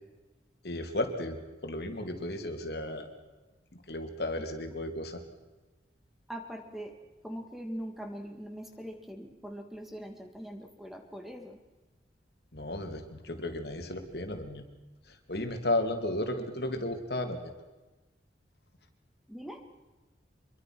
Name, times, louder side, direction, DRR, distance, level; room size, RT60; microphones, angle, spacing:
voice 1, 0.6-3.1 3.9-5.2 12.5-14.6 15.3-17.5, left 1 dB, 60° left, 5 dB, 3.1 m, -34 dB
voice 2, 6.3-6.9 7.2-11.6 19.3-19.6, equal, ahead, 4 dB, 2.4 m, -42 dB
26.0 x 23.0 x 6.2 m, 1.2 s
head